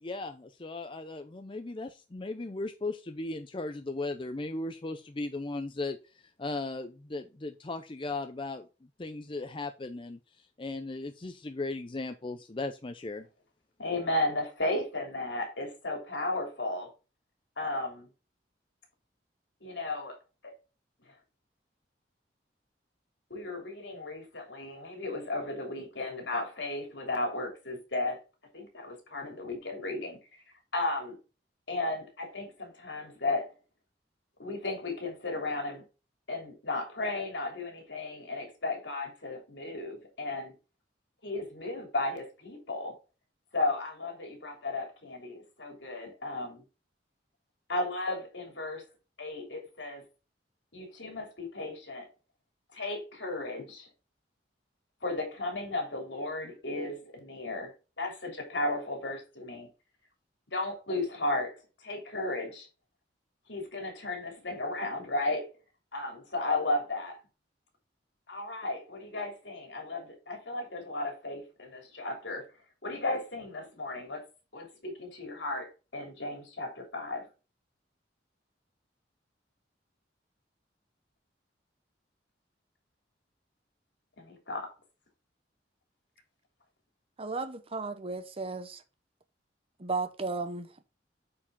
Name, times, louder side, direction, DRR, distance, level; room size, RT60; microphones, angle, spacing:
voice 1, 0.0-8.7 9.0-13.3, left 2 dB, 30° left, 0.6 m, -37 dB
voice 2, 13.8-16.9 17.6-18.1 19.6-20.1 20.4-20.5 23.3-28.2 28.5-30.2 30.7-31.2 31.7-33.5 34.4-35.8 36.3-40.5 41.2-42.9 43.5-46.6 47.7-48.9 49.2-50.0 50.7-52.1 52.7-53.9 55.0-59.7 60.5-62.7 63.5-65.5 65.9-67.2 68.3-72.5 72.8-74.2 74.5-77.3 84.2-84.7, left 2 dB, 75° left, 3.2 m, -34 dB
voice 3, 87.2-88.8 89.8-90.8, right 3 dB, 30° right, 0.9 m, -34 dB
8.5 x 4.9 x 3.7 m
head